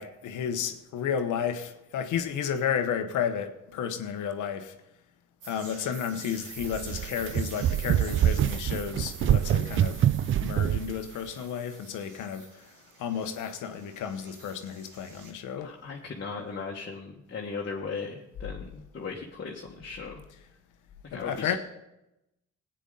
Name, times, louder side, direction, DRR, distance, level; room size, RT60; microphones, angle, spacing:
voice 1, 0.0-4.7 5.4-10.1 10.4-12.7 13.0-15.7 21.1-21.6, left 8 dB, 85° left, 1.1 m, -32 dB
sound 1, 5.4-15.3, right 3 dB, 75° right, 3.6 m, -47 dB
sound 2, 6.6-10.9, right 11 dB, 45° right, 0.4 m, -25 dB
voice 2, 15.6-20.2 21.0-21.6, left 5 dB, 40° left, 1.6 m, -37 dB
15.5 x 9.1 x 4.0 m
cardioid pair, 90°, 30 cm